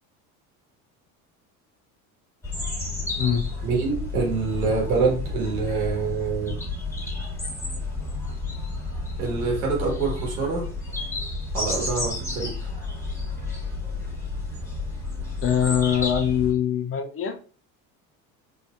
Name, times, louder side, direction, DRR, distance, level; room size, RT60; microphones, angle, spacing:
sound 1, 2.4-16.5, left 3 dB, 5° left, 1.6 m, -31 dB
voice 1, 3.6-6.6 9.2-10.7 11.5-12.5, right 4 dB, 85° right, 1.6 m, -26 dB
voice 2, 15.4-17.4, left 8 dB, 30° left, 0.5 m, -23 dB
4.1 x 2.7 x 2.3 m
hypercardioid pair, 80°, 43 cm